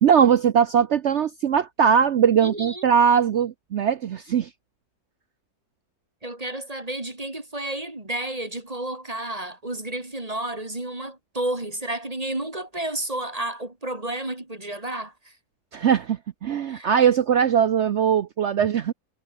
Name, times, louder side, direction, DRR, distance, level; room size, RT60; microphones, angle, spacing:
voice 1, 0.0-4.5 15.7-18.9, right 8 dB, 60° right, 0.9 m, -20 dB
voice 2, 2.4-2.8 6.2-15.3 16.7-16.9, right 1 dB, 25° right, 2.6 m, -31 dB
omnidirectional pair, 1.6 m